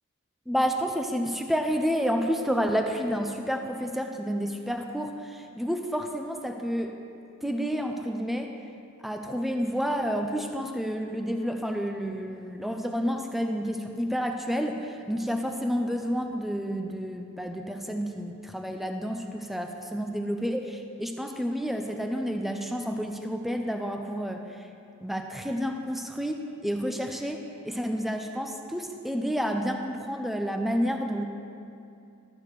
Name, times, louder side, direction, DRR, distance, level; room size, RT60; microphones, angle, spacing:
voice 1, 0.5-6.9 7.4-8.5 9.0-24.4 25.0-26.4 26.6-31.2, equal, ahead, 4 dB, 0.4 m, -30 dB
12.0 x 4.7 x 6.7 m, 2.6 s
head